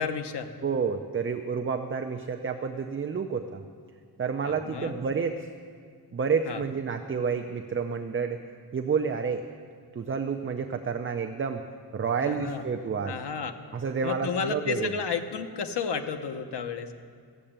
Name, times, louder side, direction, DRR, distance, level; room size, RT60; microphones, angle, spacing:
voice 1, 0.0-0.5 4.4-5.0 6.5-6.6 12.2-12.6 13.0-13.5 14.0-16.9, left 6 dB, 80° left, 7 dB, 1.0 m, -32 dB
voice 2, 0.6-3.6 4.2-5.5 6.1-8.4 8.7-9.4 10.0-11.6 11.9-13.1 13.7-14.9, right 5 dB, 30° right, 5 dB, 0.5 m, -29 dB
13.5 x 7.8 x 8.7 m, 2.1 s
wide cardioid pair, 145°, 40 cm